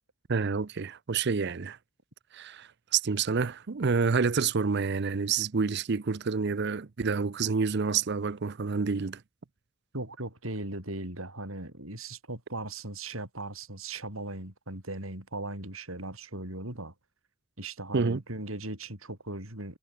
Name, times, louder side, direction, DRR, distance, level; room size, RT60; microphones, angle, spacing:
voice 1, 0.3-1.8 2.3-9.2 17.9-18.2, right 5 dB, 55° right, 0.6 m, -28 dB
voice 2, 9.9-16.9 17.6-19.8, right 2 dB, 80° right, 7.0 m, -38 dB
head